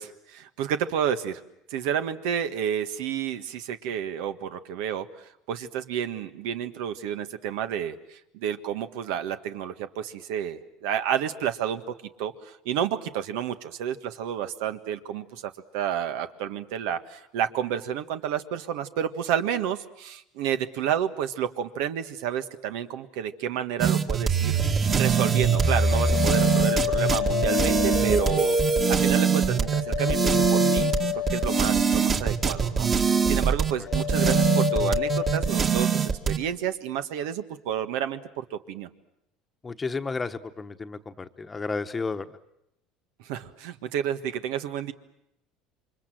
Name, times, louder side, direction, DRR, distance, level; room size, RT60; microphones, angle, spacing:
voice 1, 0.0-1.4 1.7-11.8 12.2-28.6 28.9-38.9 43.2-44.9, right 9 dB, 80° right, 9 dB, 1.6 m, -30 dB
sound 1, 23.8-36.4, right 6 dB, 30° right, 1.9 m, -23 dB
sound 2, 24.6-32.7 33.0-33.5 33.9-35.6, left 15 dB, 50° left, 1.1 m, -30 dB
voice 2, 39.6-42.2, left 4 dB, 20° left, 9 dB, 1.2 m, -32 dB
28.5 x 24.5 x 7.7 m, 0.82 s
cardioid pair, 125°, 0 cm